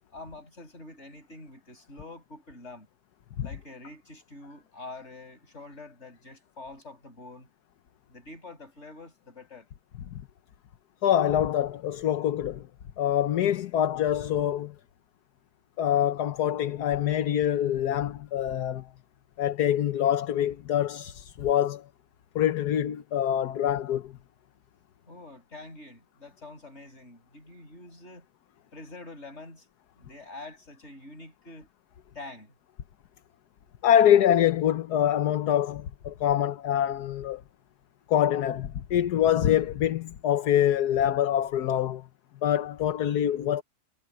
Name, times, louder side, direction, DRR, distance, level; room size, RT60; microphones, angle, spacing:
voice 1, 0.1-2.9 3.4-7.5 8.1-9.7 25.1-28.3 28.7-29.7 30.0-31.7 32.1-32.5, left 2 dB, 40° left, 7.5 m, -46 dB
voice 2, 11.0-12.7 13.0-14.7 15.8-18.9 19.4-21.8 22.3-24.1 33.8-37.4 38.1-42.0 42.4-43.6, left 10 dB, 70° left, 1.4 m, -25 dB
omnidirectional pair, 1.8 m